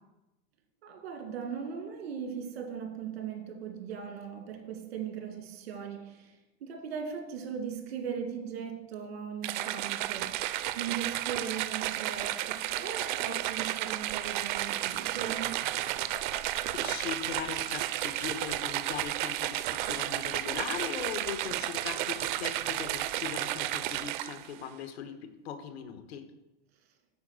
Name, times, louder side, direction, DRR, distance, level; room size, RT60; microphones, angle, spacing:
voice 1, 0.8-10.4 10.8-15.6, right 7 dB, 90° right, 2.1 m, -39 dB
sound 1, 9.4-24.5, right 14 dB, 50° right, 0.5 m, -32 dB
sound 2, 14.8-19.0, left 8 dB, 25° left, 0.4 m, -53 dB
voice 2, 16.7-26.2, left 8 dB, 90° left, 1.3 m, -39 dB
9.4 x 4.7 x 6.4 m
supercardioid pair, 160°, 31 cm